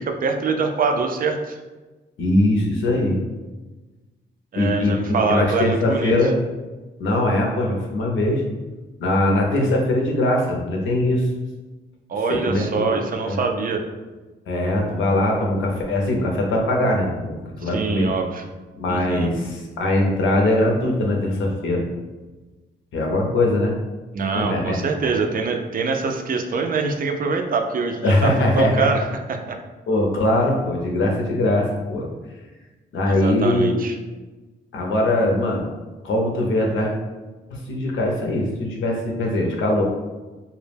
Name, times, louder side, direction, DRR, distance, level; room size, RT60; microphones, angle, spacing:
voice 1, 0.0-1.6 4.5-6.1 12.1-13.8 17.6-18.4 18.9-19.3 24.1-28.3 28.6-29.0 29.3-29.6 33.1-33.9, right 4 dB, 45° right, 4 dB, 0.4 m, -24 dB
voice 2, 2.2-3.2 4.6-5.0 5.3-6.4 7.0-8.4 9.0-11.3 12.3-12.9 13.2-13.4 14.5-18.1 18.8-21.8 22.9-23.7 24.3-24.8 28.0-28.9 29.9-32.1 32.9-33.8 34.7-35.6 36.0-36.9 37.5-39.8, left 1 dB, 85° left, 0 dB, 0.6 m, -21 dB
2.1 x 2.0 x 3.2 m, 1.2 s
cardioid pair, 70°, 20 cm